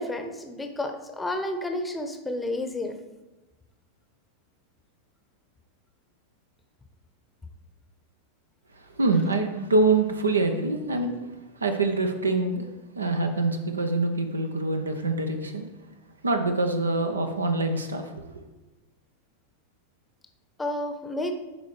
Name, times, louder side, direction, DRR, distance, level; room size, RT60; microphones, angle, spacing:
voice 1, 0.0-3.0 20.6-21.3, left 1 dB, 10° left, 5 dB, 0.8 m, -31 dB
voice 2, 8.8-11.3 11.6-12.6 13.0-15.7 16.2-18.4, right 3 dB, 75° right, 7 dB, 0.7 m, -25 dB
11.0 x 4.2 x 3.3 m, 1.1 s
figure-of-eight pair, 90°, 0 cm